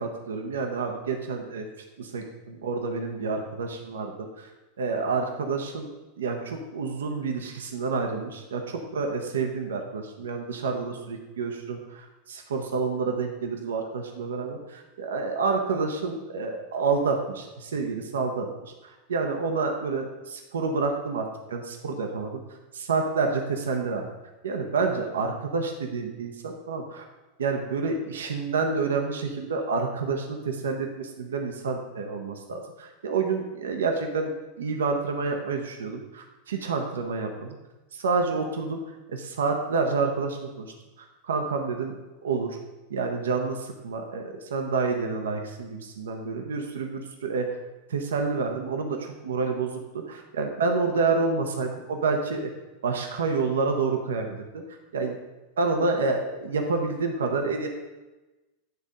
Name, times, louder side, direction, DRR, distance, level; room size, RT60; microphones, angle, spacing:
voice 1, 0.0-1.7 2.0-4.5 4.8-5.9 6.2-22.4 22.7-24.1 24.4-27.1 27.4-37.6 37.9-38.8 39.1-41.9 42.2-42.6 42.9-47.6 47.9-52.5 52.8-54.6 54.9-55.2 55.6-57.7, right 4 dB, 75° right, 4 dB, 0.8 m, -28 dB
9.2 x 3.6 x 5.2 m, 1.1 s
hypercardioid pair, 90°, 0 cm